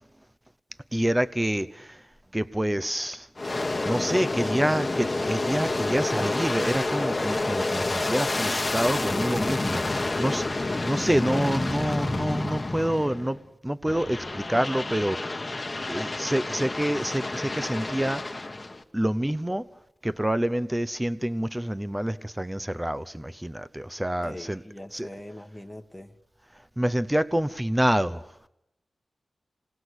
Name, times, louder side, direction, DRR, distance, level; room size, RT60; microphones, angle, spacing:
voice 1, 0.9-2.0 2.3-3.3 3.8-15.5 15.9-18.4 18.9-19.7 20.0-24.6 24.9-25.1 26.8-28.2, right 1 dB, 10° right, 13 dB, 0.8 m, -27 dB
Aircraft, 3.4-13.4 13.9-18.8, left 2 dB, 30° left, 1.3 m, -29 dB
voice 2, 24.2-26.1, left 1 dB, 5° left, 3 dB, 1.3 m, -42 dB
27.5 x 19.5 x 8.1 m, 0.87 s
wide cardioid pair, 75°, 0 cm